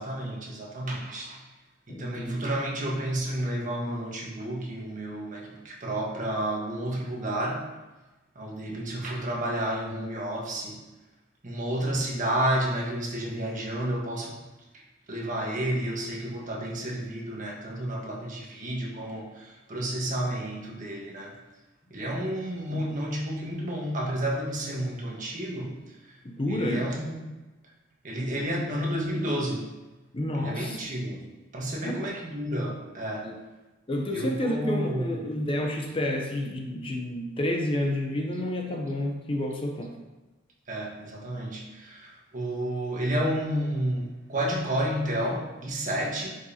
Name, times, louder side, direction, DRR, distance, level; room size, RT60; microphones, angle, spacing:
voice 1, 0.0-1.4 1.9-7.6 8.3-10.8 11.4-14.3 14.7-14.8 15.1-21.3 21.9-26.0 26.5-27.3 28.0-29.7 30.3-31.2 31.5-33.3 34.1-35.2 40.7-46.3, right 1 dB, 40° right, -2 dB, 1.4 m, -31 dB
voice 2, 1.9-2.4 22.7-22.8 26.2-26.9 30.1-30.8 31.8-32.1 33.2-33.4 33.9-39.9, left 1 dB, 30° left, 2 dB, 0.7 m, -30 dB
9.4 x 5.2 x 2.8 m, 1.1 s
head